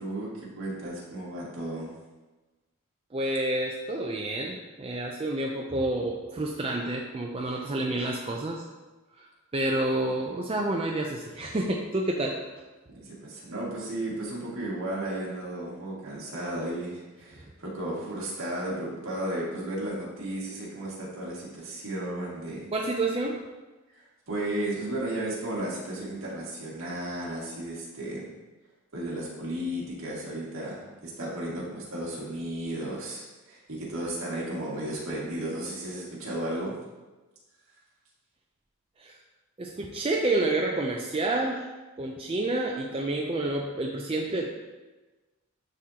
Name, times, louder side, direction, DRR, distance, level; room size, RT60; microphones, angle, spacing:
voice 1, 0.0-1.9 10.0-10.1 13.0-22.7 23.9-28.2 28.9-36.8, right 1 dB, 65° right, -6 dB, 2.1 m, -34 dB
voice 2, 3.1-8.6 9.1-9.3 9.5-12.4 22.7-23.4 39.0-39.2 39.6-41.7 42.0-44.5, right 2 dB, 25° right, 0 dB, 0.4 m, -29 dB
10.5 x 3.8 x 2.8 m, 1.2 s
head